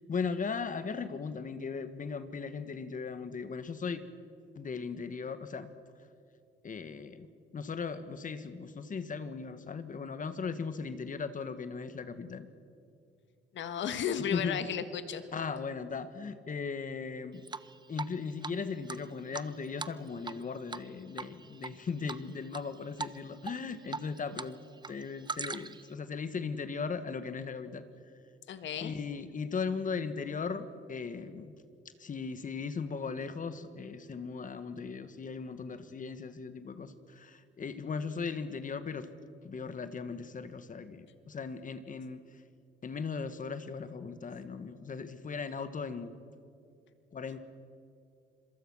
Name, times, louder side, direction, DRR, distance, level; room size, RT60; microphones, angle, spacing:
voice 1, 0.1-4.0 4.5-5.7 6.6-7.3 7.5-12.5 14.3-14.6 15.3-17.4 17.9-24.6 24.9-27.8 28.8-31.5 32.0-39.1 39.4-42.2 42.8-46.2 47.1-47.4, left 5 dB, 40° left, 11 dB, 1.5 m, -38 dB
voice 2, 13.5-15.3 28.5-28.9, left 8 dB, 70° left, 10 dB, 1.7 m, -34 dB
Drip, 17.5-18.1 18.4-18.5 18.9-20.4 20.7-20.9 21.2-21.7 22.1-22.6 23.0-23.2 23.4-24.5 24.8-25.9, right 4 dB, 20° right, 0.7 m, -39 dB
27.0 x 22.5 x 6.3 m, 2.5 s
cardioid pair, 90°, 20 cm